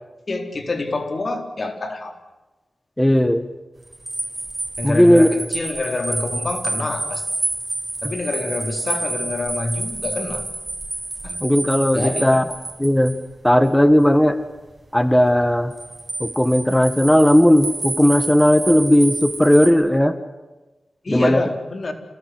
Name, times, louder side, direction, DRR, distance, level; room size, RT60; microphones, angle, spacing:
voice 1, 0.3-2.1 4.8-7.3 8.0-10.5 11.2-11.4 11.9-12.4 21.0-21.9, left 2 dB, 60° left, 6 dB, 4.2 m, -26 dB
voice 2, 3.0-3.5 4.8-5.3 11.4-12.4 12.8-13.2 13.4-14.4 14.9-15.7 16.2-20.2 21.1-21.4, equal, 10° left, 11 dB, 1.8 m, -16 dB
sound 1, 3.9-13.2 15.7-19.7, right 2 dB, 30° right, 7.5 m, -29 dB
28.0 x 19.0 x 9.6 m, 1.2 s
cardioid pair, 50°, 0 cm